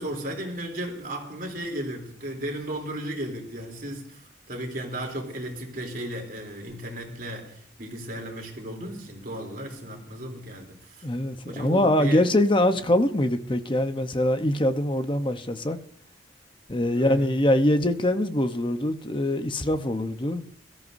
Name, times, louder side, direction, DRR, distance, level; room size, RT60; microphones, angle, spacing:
voice 1, 0.0-11.1 11.5-12.3 12.7-12.9 16.9-17.3, right 1 dB, 45° right, 3.4 m, -35 dB
voice 2, 11.0-15.8 16.7-20.4, left 1 dB, 25° left, 0.9 m, -23 dB
22.0 x 14.0 x 2.7 m
head